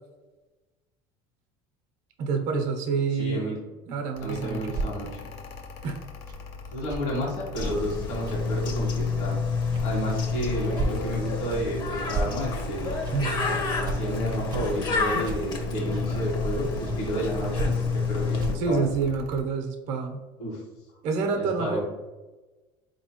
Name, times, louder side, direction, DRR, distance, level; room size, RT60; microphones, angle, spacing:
voice 1, 2.2-3.5 3.9-4.6 5.8-6.0 13.1-13.4 14.6-14.7 18.5-20.2 21.0-21.8, right 5 dB, 70° right, 4 dB, 0.8 m, -27 dB
voice 2, 3.2-3.6 4.2-5.3 6.7-9.3 9.8-12.9 13.8-18.9 20.4-20.6 21.3-21.8, equal, 65° left, -4 dB, 1.4 m, -31 dB
Mechanical fan, 4.1-19.4, left 2 dB, 80° left, 0.6 m, -43 dB
sound 1, 4.7-4.9 6.3-6.4 6.9-7.0 7.6-7.8 8.3-8.4 8.8-9.0 9.7-9.9 10.1-10.3 10.8-10.9 11.5-11.6 12.1-12.3 13.0-13.1 13.8-14.0 14.5-14.6 15.2-15.4 15.9-16.0 16.8-16.9 17.5-17.7 18.4-18.7, right 3 dB, 35° right, 0.6 m, -31 dB
Bird, 7.5-18.5, left 4 dB, 40° left, 0.7 m, -29 dB
4.2 x 3.0 x 2.9 m, 1.2 s
supercardioid pair, 120°, 12 cm